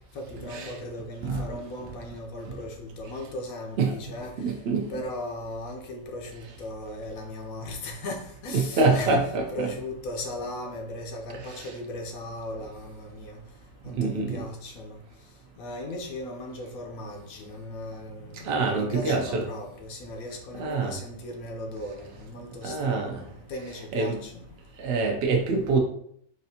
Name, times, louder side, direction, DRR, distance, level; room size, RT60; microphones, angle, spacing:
voice 1, 0.1-4.6 4.9-13.4 13.8-15.0 15.6-24.5, left 1 dB, 70° left, 2 dB, 1.1 m, -37 dB
voice 2, 1.2-1.6 3.8-4.0 4.4-4.9 8.5-9.7 11.5-11.7 14.0-14.4 18.4-19.4 20.6-21.0 22.6-23.2 23.9-24.2 24.8-25.8, right 3 dB, 70° right, 1 dB, 0.5 m, -25 dB
4.1 x 2.5 x 2.7 m, 0.66 s
omnidirectional pair, 1.6 m